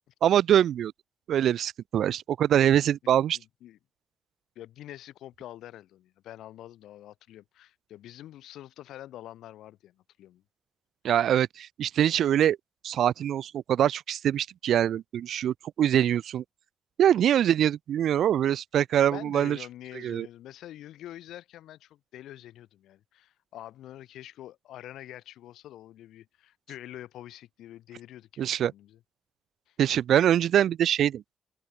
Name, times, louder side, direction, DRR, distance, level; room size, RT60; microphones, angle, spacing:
voice 1, 0.2-0.9 1.3-3.4 11.0-12.6 12.8-16.4 17.0-19.6 20.0-20.3 28.4-28.7 29.8-31.2, right 10 dB, 70° right, 0.6 m, -24 dB
voice 2, 3.3-3.8 4.5-10.4 19.0-29.0 29.7-29.8, left 13 dB, 75° left, 3.4 m, -46 dB
open air
hypercardioid pair, 45°, 0 cm